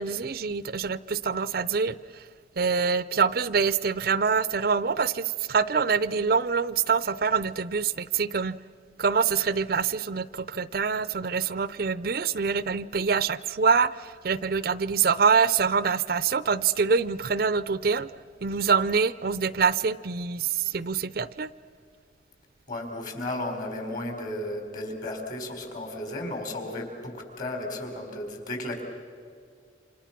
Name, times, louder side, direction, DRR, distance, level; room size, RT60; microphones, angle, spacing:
voice 1, 0.0-2.2 2.6-8.6 9.0-18.1 18.4-21.5, right 5 dB, 55° right, 17 dB, 0.5 m, -25 dB
voice 2, 22.7-28.8, left 1 dB, 45° left, 4 dB, 4.4 m, -34 dB
29.0 x 26.5 x 6.0 m, 2.2 s
head